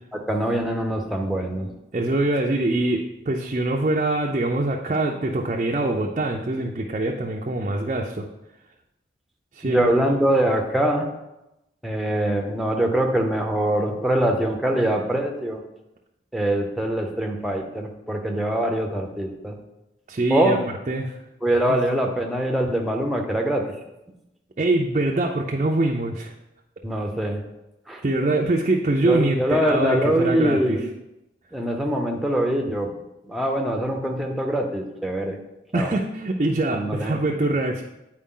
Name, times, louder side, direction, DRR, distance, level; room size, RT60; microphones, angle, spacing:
voice 1, 0.1-1.7 9.6-11.1 11.8-15.6 16.3-19.6 20.3-20.6 21.4-23.6 26.8-27.4 27.9-28.0 29.0-30.9 31.5-32.9 33.3-35.4 35.7-35.9 36.7-37.2, right 1 dB, ahead, 1 dB, 0.7 m, -23 dB
voice 2, 1.9-8.3 9.5-9.9 20.1-20.6 20.9-21.2 21.7-21.8 24.6-26.3 28.0-30.8 35.7-37.8, right 2 dB, 40° right, 0 dB, 0.5 m, -24 dB
8.3 x 4.6 x 3.7 m, 0.92 s
head